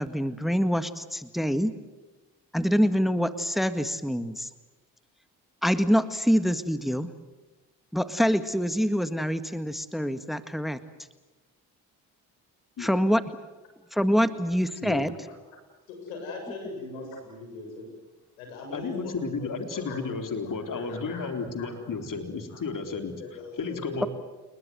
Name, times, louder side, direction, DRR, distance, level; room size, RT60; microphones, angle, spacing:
voice 1, 0.0-1.7 2.5-4.5 5.6-7.1 7.9-10.8 12.8-13.2 13.9-15.2, equal, ahead, 11 dB, 1.8 m, -25 dB
voice 2, 15.9-17.9 18.4-19.1 19.4-21.7 22.5-22.6 23.2-24.1, left 2 dB, 90° left, 3 dB, 7.3 m, -40 dB
voice 3, 18.7-23.2 23.6-24.1, left 4 dB, 50° left, 6 dB, 3.9 m, -33 dB
29.5 x 21.0 x 7.9 m, 1.2 s
hypercardioid pair, 50°, 41 cm